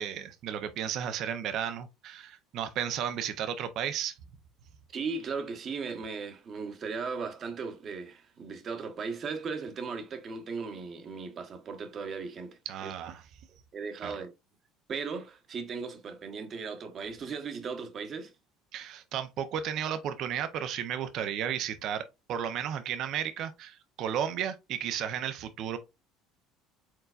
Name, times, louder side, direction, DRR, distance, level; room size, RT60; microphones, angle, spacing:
voice 1, 0.0-4.1 12.7-13.2 14.0-14.1 18.7-22.0 22.3-25.8, right 9 dB, 60° right, 0.6 m, -33 dB
voice 2, 4.9-12.9 13.7-14.3 14.9-18.3, right 5 dB, 45° right, 1.0 m, -37 dB
4.6 x 3.9 x 2.4 m
supercardioid pair, 90°, 0 cm